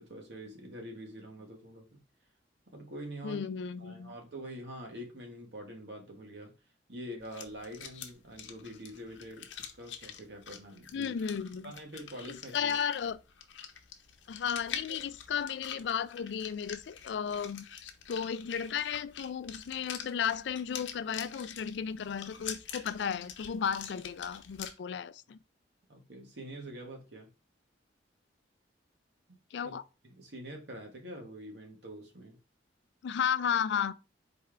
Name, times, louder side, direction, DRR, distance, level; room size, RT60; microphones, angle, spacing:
voice 1, 0.0-2.0 2.7-3.5 3.8-6.5 6.9-11.1 11.6-12.7 14.9-15.0 25.9-27.3 29.6-29.8 30.0-32.4, right 1 dB, 65° right, 1.4 m, -45 dB
voice 2, 3.2-4.1 10.9-11.7 12.3-13.2 14.3-17.7 18.1-25.4 29.5-29.8 33.0-33.9, left 7 dB, 70° left, 0.3 m, -34 dB
sound 1, 7.2-24.7, left 8 dB, 85° left, 0.7 m, -46 dB
4.3 x 3.3 x 3.6 m
head